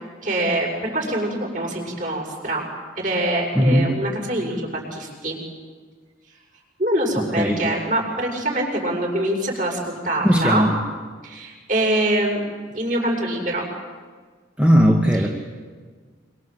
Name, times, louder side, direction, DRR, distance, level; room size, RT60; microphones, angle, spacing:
voice 1, 0.2-2.6 3.0-5.4 6.8-10.7 11.2-12.5 12.7-13.7 15.2-15.3, right 1 dB, 40° right, 0 dB, 7.0 m, -24 dB
voice 2, 3.5-4.1 7.1-7.7 10.2-10.7 14.6-15.3, equal, 5° right, 0 dB, 1.8 m, -18 dB
26.0 x 25.5 x 7.9 m, 1.5 s
head